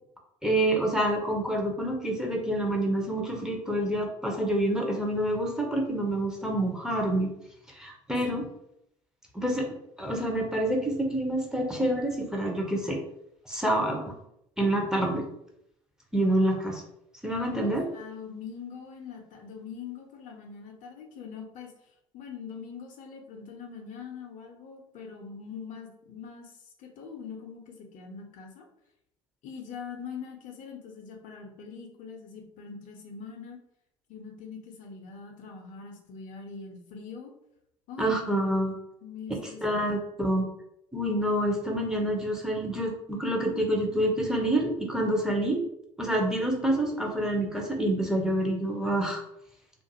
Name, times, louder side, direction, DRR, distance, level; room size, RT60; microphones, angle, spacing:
voice 1, 0.4-7.3 7.7-8.4 9.3-9.7 10.0-13.0 13.5-14.0 14.6-15.3 16.1-16.8 17.2-17.8 38.0-38.7 39.6-40.5 40.9-45.6 46.0-49.2, right 1 dB, 5° right, 1 dB, 0.6 m, -27 dB
voice 2, 17.6-21.7 22.1-28.6 29.4-33.6 34.1-37.3 37.9-38.6 39.0-39.8, left 6 dB, 50° left, 2 dB, 0.6 m, -43 dB
2.4 x 2.4 x 2.7 m, 0.78 s
hypercardioid pair, 60°, 17 cm